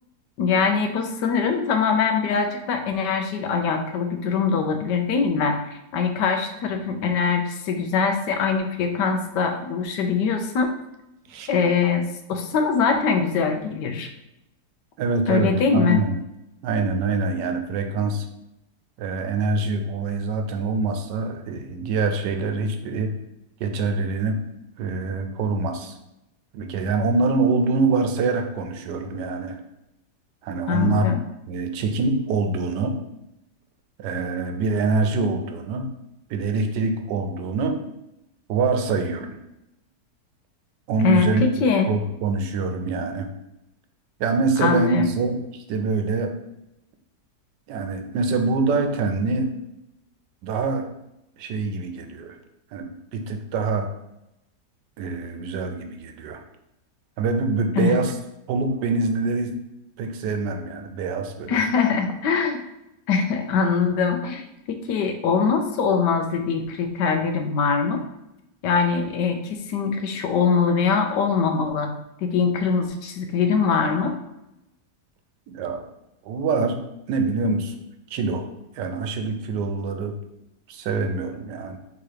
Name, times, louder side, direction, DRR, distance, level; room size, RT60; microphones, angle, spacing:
voice 1, 0.4-10.7 11.5-14.1 15.3-16.0 30.7-31.2 41.0-41.9 44.6-45.0 57.8-57.9 61.5-62.6 63.1-68.0 68.6-71.9 72.2-74.1, left 5 dB, 85° left, 5 dB, 1.3 m, -22 dB
voice 2, 15.0-16.2 16.6-18.3 19.0-23.1 23.6-24.4 24.8-26.0 26.5-29.6 30.4-31.1 31.5-33.0 34.0-35.9 36.3-37.8 38.5-39.4 40.9-43.3 44.2-46.4 47.7-49.5 50.4-50.9 51.4-52.4 52.7-53.9 55.0-56.4 57.2-58.1 58.5-59.5 60.0-61.6 75.5-75.8 76.2-76.8 77.1-77.8 78.1-78.5 78.7-80.1 80.7-81.8, right 3 dB, 80° right, 6 dB, 1.2 m, -25 dB
3.6 x 2.9 x 4.8 m, 0.88 s
omnidirectional pair, 1.8 m